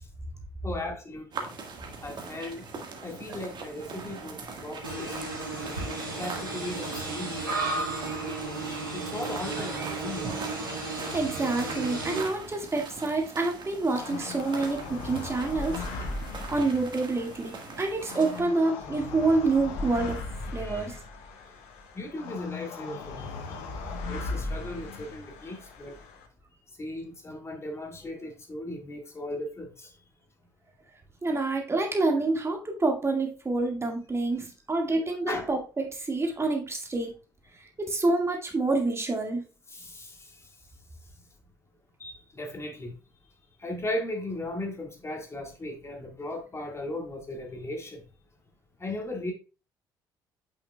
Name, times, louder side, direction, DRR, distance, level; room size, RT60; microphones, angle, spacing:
voice 1, 0.6-1.5 2.0-2.6 3.0-5.2 6.2-7.4 8.3-8.5 8.9-10.3 16.0-16.1 20.6-20.9 21.9-23.6 24.1-26.0 26.8-29.9 34.9-35.0 35.3-35.5 39.7-40.3 42.0-43.0 43.6-48.0 48.8-49.3, left 1 dB, 25° left, 1.8 m, -37 dB
sound 1, 1.3-18.4, right 4 dB, 45° right, 1.6 m, -41 dB
sound 2, 4.8-12.2, right 3 dB, 85° right, 1.4 m, -34 dB
voice 2, 11.1-15.7 16.5-20.2 20.5-21.0 31.2-37.1 37.8-39.4, right 3 dB, 25° right, 1.9 m, -27 dB
sound 3, 13.9-26.3, left 3 dB, 65° left, 1.1 m, -38 dB
8.8 x 5.7 x 2.3 m
figure-of-eight pair, 45°, 11 cm